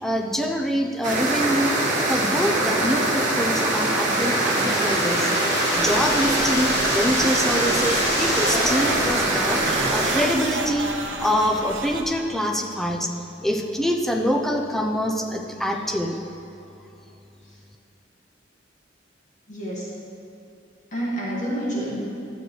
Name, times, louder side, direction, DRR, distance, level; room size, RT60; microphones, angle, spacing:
voice 1, 0.0-1.8 2.1-5.4 5.7-10.9 11.2-13.1 13.4-16.2, equal, ahead, 2 dB, 0.6 m, -25 dB
sound 1, 1.0-10.3, right 2 dB, 45° right, 1.6 m, -23 dB
sound 2, 3.1-10.1, left 2 dB, 60° left, 1.7 m, -31 dB
sound 3, 5.7-12.0, right 3 dB, 80° right, 0.9 m, -33 dB
voice 2, 19.5-19.9 20.9-22.0, right 1 dB, 40° left, -7 dB, 2.2 m, -28 dB
12.0 x 7.8 x 3.3 m, 2.9 s
head